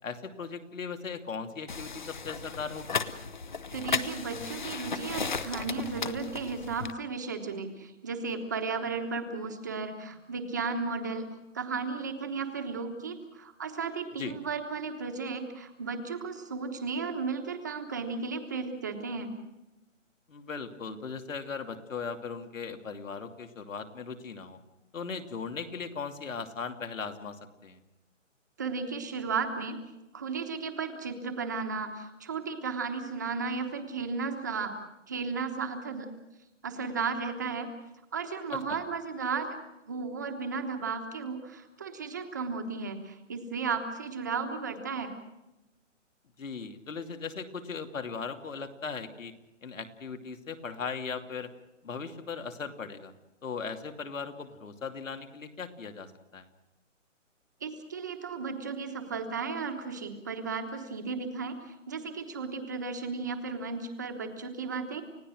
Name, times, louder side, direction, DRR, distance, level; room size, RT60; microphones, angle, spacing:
voice 1, 0.0-3.0 14.2-14.3 20.3-24.6 24.9-27.8 38.5-38.8 46.4-49.3 49.6-51.5 51.8-53.1 53.4-56.5, left 5 dB, 80° left, 6 dB, 2.9 m, -38 dB
sound 1, 1.7-6.9, left 5 dB, 35° left, 0.9 m, -35 dB
voice 2, 3.7-19.3 28.6-29.8 30.1-34.7 35.1-36.1 36.6-37.7 38.1-39.6 39.9-45.1 57.6-65.0, right 4 dB, 15° right, 5 dB, 1.1 m, -34 dB
30.0 x 16.5 x 6.3 m, 0.96 s
hypercardioid pair, 180°, 38 cm